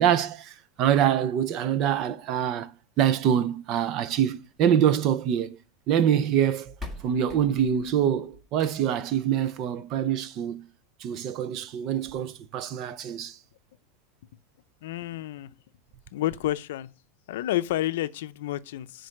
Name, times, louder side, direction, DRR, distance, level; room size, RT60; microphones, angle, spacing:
voice 1, 0.0-5.6 5.9-6.7 7.0-10.6 11.0-13.4, right 9 dB, 40° right, 0.6 m, -25 dB
sound 1, 4.4-5.6 6.4-6.5 6.8-9.1 10.4-10.5 11.0-11.1 11.4-11.5 12.0-12.1, left 3 dB, 10° right, 1.8 m, -44 dB
voice 2, 14.8-15.5 16.1-16.9 17.3-19.1, left 14 dB, 75° left, 0.5 m, -30 dB
9.6 x 3.9 x 6.5 m
supercardioid pair, 155°, 0 cm